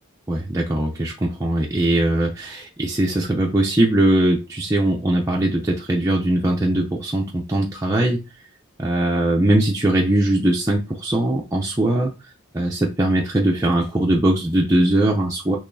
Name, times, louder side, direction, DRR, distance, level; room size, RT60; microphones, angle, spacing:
voice 1, 0.3-8.2 8.8-15.6, right 1 dB, 15° right, 0.5 m, -20 dB
6.4 x 3.1 x 2.6 m
head